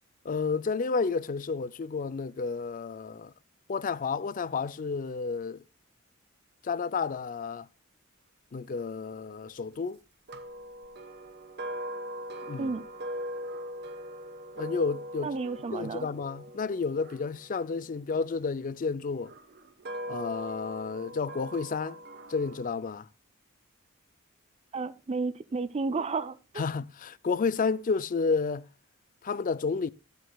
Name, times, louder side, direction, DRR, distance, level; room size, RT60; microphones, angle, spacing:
voice 1, 0.2-3.3 3.7-5.6 6.6-7.7 8.5-10.0 12.5-12.7 14.5-15.3 15.7-19.3 20.1-22.0 22.3-23.1 26.6-28.7 29.2-29.9, left 4 dB, 40° left, 0.4 m, -31 dB
sound 1, 10.3-18.4 19.2-22.7, equal, 50° right, 1.1 m, -41 dB
voice 2, 15.2-16.1 24.7-26.6, right 4 dB, 30° right, 0.4 m, -32 dB
14.5 x 7.9 x 2.3 m
head